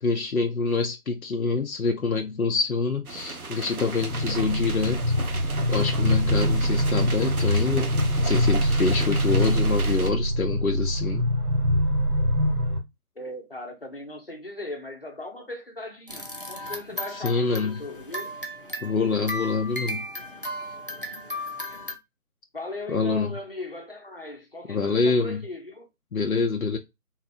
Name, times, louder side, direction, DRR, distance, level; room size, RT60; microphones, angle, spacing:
voice 1, 0.0-5.0 5.7-7.9 8.2-11.3 17.2-17.8 18.8-20.1 22.9-23.4 24.7-25.4 26.1-26.8, left 4 dB, 70° left, 0.7 m, -26 dB
sound 1, 3.0-10.1, right 4 dB, 70° right, 0.8 m, -36 dB
sound 2, 4.0-12.8, equal, 85° right, 1.5 m, -24 dB
voice 2, 13.2-18.3 22.5-25.9, left 2 dB, 40° left, 0.8 m, -38 dB
sound 3, 16.1-22.0, left 1 dB, 40° right, 0.5 m, -35 dB
3.9 x 2.8 x 2.2 m
figure-of-eight pair, 165°, 44 cm